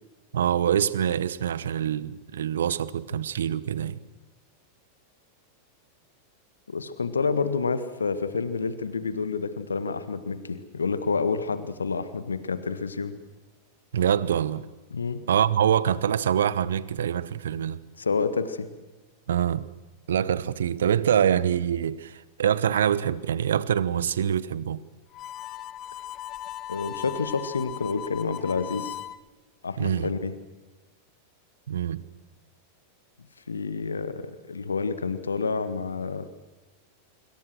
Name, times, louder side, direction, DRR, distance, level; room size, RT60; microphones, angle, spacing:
voice 1, 0.3-4.0 13.9-14.7 15.3-17.8 19.3-19.7 20.1-24.8 29.8-30.1 31.7-32.0, right 9 dB, 65° right, 1.1 m, -25 dB
voice 2, 6.7-13.2 14.9-15.2 18.0-18.7 26.7-29.0 29.6-30.3 33.5-36.3, left 4 dB, 75° left, 1.6 m, -29 dB
Harmonica, 25.1-29.2, left 12 dB, 35° left, 1.4 m, -38 dB
26.0 x 24.5 x 6.3 m
figure-of-eight pair, 90°, 0 cm